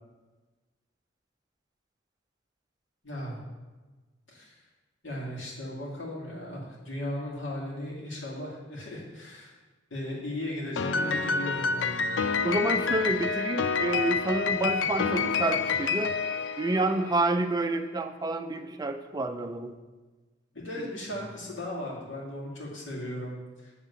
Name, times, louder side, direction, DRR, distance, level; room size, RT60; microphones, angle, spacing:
voice 1, 3.0-3.4 4.3-4.5 5.0-9.5 9.9-12.0 20.5-23.8, left 1 dB, 85° left, -4 dB, 2.2 m, -37 dB
Piano, 10.8-17.3, left 5 dB, 70° left, 0.4 m, -28 dB
voice 2, 12.4-16.1 16.6-19.7, right 2 dB, 20° right, 7 dB, 0.4 m, -28 dB
8.4 x 3.6 x 6.8 m, 1.3 s
head